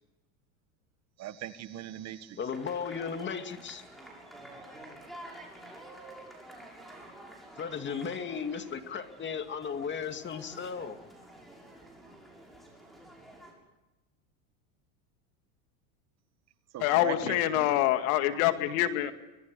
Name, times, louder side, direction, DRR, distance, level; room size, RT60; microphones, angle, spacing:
voice 1, 1.2-2.4 16.7-17.7, right 11 dB, 35° right, 12 dB, 1.5 m, -40 dB
voice 2, 2.4-3.8 7.6-11.0, left 6 dB, 25° left, 7 dB, 2.3 m, -35 dB
sound 1, 2.5-13.5, right 1 dB, ahead, 7.1 m, -49 dB
voice 3, 16.8-19.1, left 14 dB, 70° left, 8 dB, 2.2 m, -26 dB
25.5 x 21.0 x 8.2 m, 1.0 s
supercardioid pair, 130°, 43 cm